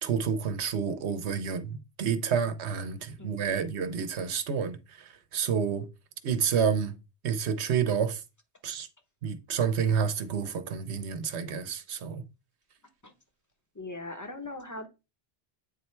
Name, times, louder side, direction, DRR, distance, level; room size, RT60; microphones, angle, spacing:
voice 1, 0.0-5.9 6.2-6.9 7.2-8.2 8.6-8.9 9.2-12.2, right 7 dB, 90° right, 1.1 m, -29 dB
voice 2, 3.2-3.6 13.0-13.1 13.7-14.9, left 2 dB, 20° left, 0.8 m, -40 dB
8.6 x 4.3 x 3.2 m
omnidirectional pair, 1.1 m